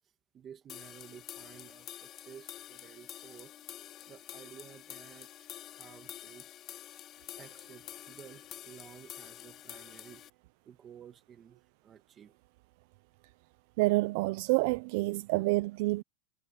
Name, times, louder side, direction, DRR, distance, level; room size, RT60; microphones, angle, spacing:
voice 1, 0.3-3.5 4.1-5.3 5.7-6.5 7.4-10.3 10.6-12.4, right 8 dB, 20° right, 1.5 m, -53 dB
sound 1, 0.7-10.3, left 12 dB, 25° left, 2.2 m, -48 dB
voice 2, 13.8-16.0, right 23 dB, 45° right, 0.4 m, -28 dB
supercardioid pair, 180°, 0 cm